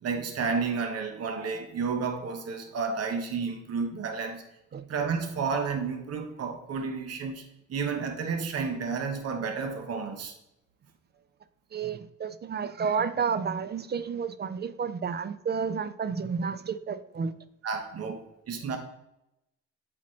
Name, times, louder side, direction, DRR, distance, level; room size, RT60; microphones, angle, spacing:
voice 1, 0.0-4.4 4.7-7.4 7.7-10.3 17.6-18.8, right 5 dB, 55° right, 5 dB, 1.0 m, -31 dB
voice 2, 11.7-17.3, right 6 dB, 35° right, 13 dB, 0.4 m, -31 dB
8.2 x 4.2 x 3.2 m, 0.85 s
cardioid pair, 90°, 30 cm